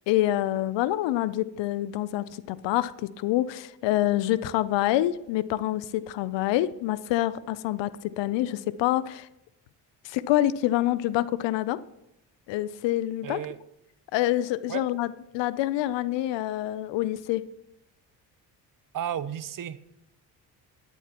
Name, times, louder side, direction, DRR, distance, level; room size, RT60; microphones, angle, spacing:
voice 1, 0.1-9.3 10.0-11.8 12.5-13.4 14.1-17.5, left 14 dB, 80° left, 0.6 m, -26 dB
voice 2, 13.2-13.6 14.7-14.8 18.9-19.8, right 10 dB, 50° right, 0.7 m, -33 dB
12.5 x 10.5 x 2.9 m
supercardioid pair, 65°, 43 cm